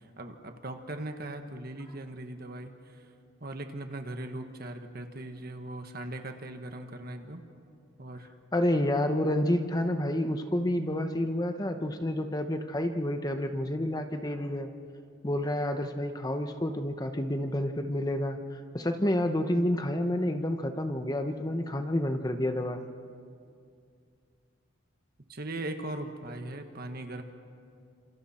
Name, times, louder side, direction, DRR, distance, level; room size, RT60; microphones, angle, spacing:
voice 1, 0.0-3.1 3.4-7.4 8.0-8.3 25.3-27.2, right 1 dB, 45° right, 6 dB, 1.5 m, -39 dB
voice 2, 8.5-14.7 15.2-22.8, left 1 dB, 20° left, 7 dB, 0.9 m, -29 dB
29.5 x 27.0 x 4.4 m, 2.4 s
head